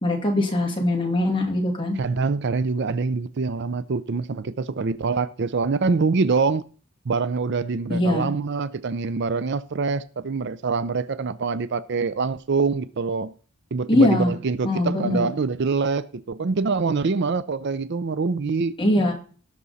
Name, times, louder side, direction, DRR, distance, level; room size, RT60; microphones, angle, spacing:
voice 1, 0.0-2.0 7.9-8.3 13.9-14.3 14.6-15.3 18.8-19.1, left 1 dB, 20° left, 2.4 m, -21 dB
voice 2, 2.0-6.6 7.1-13.3 13.7-18.7, right 4 dB, 50° right, 0.5 m, -25 dB
18.5 x 6.2 x 4.1 m
head